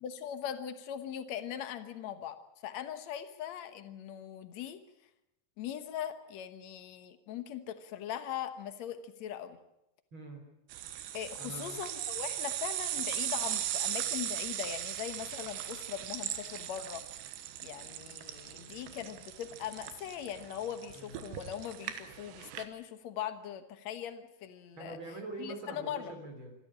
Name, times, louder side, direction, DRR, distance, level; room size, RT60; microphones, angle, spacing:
voice 1, 0.0-4.8 5.6-9.6 11.1-17.0 17.6-25.0 25.4-26.1, left 10 dB, 80° left, 9 dB, 1.5 m, -40 dB
voice 2, 10.1-10.4 11.4-11.8 20.9-21.3 24.7-26.5, right 3 dB, 30° right, 4 dB, 3.8 m, -44 dB
sound 1, 10.7-22.7, right 11 dB, 85° right, 3.5 m, -38 dB
26.5 x 14.0 x 8.7 m, 0.88 s
omnidirectional pair, 5.0 m